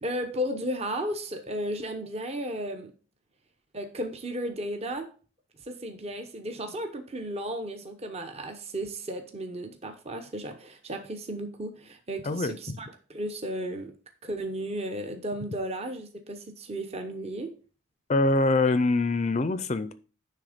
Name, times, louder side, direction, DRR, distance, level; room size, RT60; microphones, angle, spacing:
voice 1, 0.0-2.9 3.7-5.1 5.6-13.9 14.2-17.5, right 1 dB, 30° right, 0.8 m, -34 dB
voice 2, 18.1-19.9, left 2 dB, 35° left, 0.5 m, -24 dB
10.0 x 3.5 x 5.0 m
head